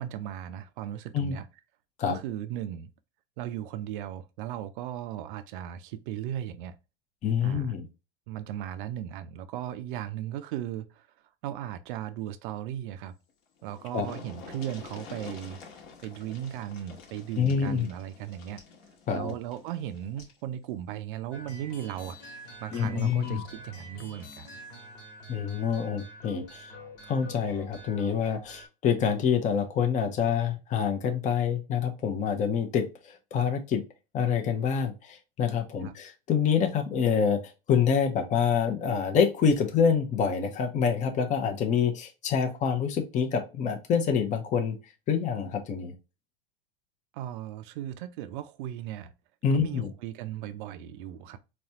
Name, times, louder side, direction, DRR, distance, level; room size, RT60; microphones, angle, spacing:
voice 1, 0.0-1.5 2.1-2.9 3.4-6.8 7.4-7.7 8.3-11.1 11.4-13.1 13.6-15.6 16.0-18.6 19.1-22.2 22.6-24.5 35.8-35.9 47.1-49.1 49.5-51.4, right 11 dB, 60° right, 0.5 m, -37 dB
voice 2, 7.2-7.9 13.9-14.1 17.4-17.9 19.1-19.3 22.7-23.4 25.3-26.7 27.1-33.8 34.1-37.4 37.7-44.8 45.1-45.9 49.4-49.9, left 7 dB, 25° left, 0.6 m, -26 dB
sound 1, 13.3-13.4 13.6-20.4 21.7-21.8 22.2-22.3, left 5 dB, 50° left, 1.1 m, -48 dB
sound 2, 21.3-28.7, left 1 dB, 65° left, 1.3 m, -46 dB
4.1 x 2.3 x 2.7 m
hypercardioid pair, 100°, 30 cm